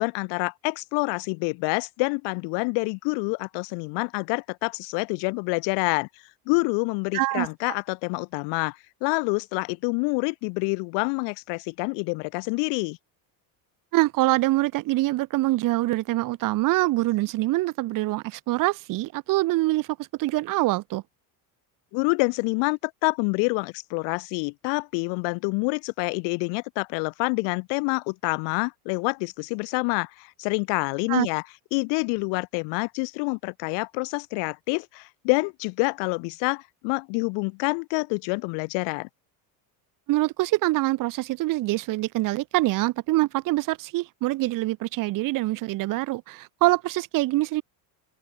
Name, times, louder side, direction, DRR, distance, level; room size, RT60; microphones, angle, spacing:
voice 1, 0.0-6.1 6.5-13.0 21.9-31.4 31.7-39.1, left 35 dB, 75° left, 6.4 m, -27 dB
voice 2, 7.1-7.5 13.9-19.9 20.2-21.0 31.1-31.3 40.1-47.6, right 18 dB, 45° right, 1.4 m, -24 dB
open air
cardioid pair, 160°, 43 cm